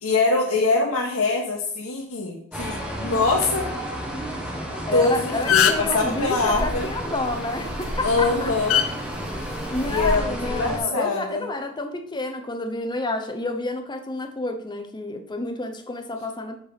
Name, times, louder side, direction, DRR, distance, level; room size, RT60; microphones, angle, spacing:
voice 1, 0.0-3.7 4.9-6.9 8.0-8.8 9.9-11.5, left 3 dB, 90° left, -3 dB, 1.4 m, -23 dB
sound 1, 2.5-10.8, equal, 5° right, 1.4 m, -31 dB
voice 2, 4.7-8.5 9.7-16.6, left 2 dB, 20° left, 6 dB, 0.9 m, -29 dB
sound 2, 4.9-5.0 5.3-6.0 7.6-7.8 8.7-8.9 9.9-10.1, left 9 dB, 70° left, 0.7 m, -19 dB
7.5 x 4.6 x 5.1 m, 0.68 s
head